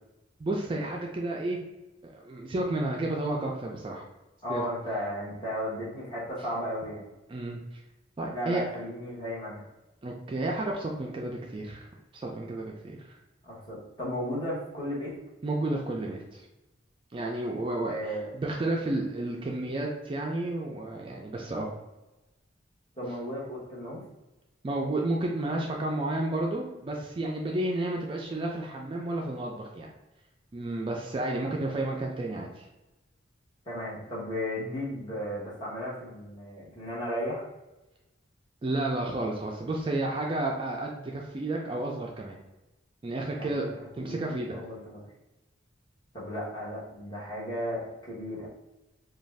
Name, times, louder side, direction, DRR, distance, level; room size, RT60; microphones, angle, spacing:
voice 1, 0.4-1.6 2.0-4.0 4.5-4.6 7.3-7.6 8.2-8.6 10.0-11.9 12.1-13.0 15.4-16.4 17.1-21.7 24.6-29.9 30.5-32.6 38.6-42.4 43.0-43.6 44.0-44.6, right 2 dB, 25° right, -1 dB, 0.3 m, -31 dB
voice 2, 4.4-7.1 8.3-9.6 13.4-15.1 17.8-18.3 23.0-24.0 31.3-31.6 33.7-37.4 43.4-45.0 46.1-48.5, equal, 25° left, -6 dB, 1.0 m, -35 dB
2.5 x 2.2 x 3.2 m, 1.0 s
head